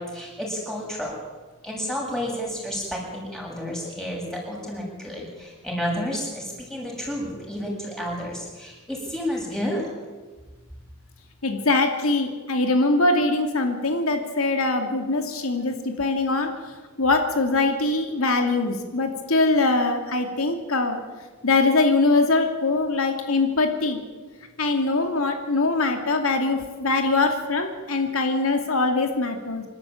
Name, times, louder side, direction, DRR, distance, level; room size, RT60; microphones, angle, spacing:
voice 1, 0.1-1.1 1.6-9.9 16.9-17.0, equal, ahead, -3 dB, 7.8 m, -31 dB
voice 2, 11.4-16.5 17.0-21.0 21.4-24.0 24.6-29.6, left 3 dB, 80° left, 5 dB, 2.5 m, -22 dB
26.5 x 13.5 x 9.0 m, 1.3 s
head